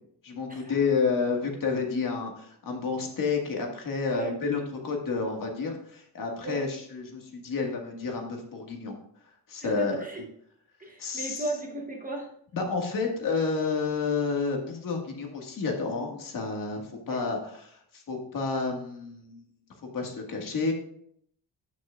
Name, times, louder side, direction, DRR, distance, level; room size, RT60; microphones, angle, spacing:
voice 1, 0.2-9.0 9.5-10.0 11.0-11.4 12.5-16.8 17.1-19.4 19.9-20.7, left 4 dB, 50° left, 1 dB, 1.9 m, -30 dB
voice 2, 9.6-10.3 10.8-12.3 17.1-17.2, right 2 dB, 20° right, 0 dB, 1.1 m, -35 dB
15.5 x 6.1 x 2.5 m, 0.67 s
wide cardioid pair, 170°, 41 cm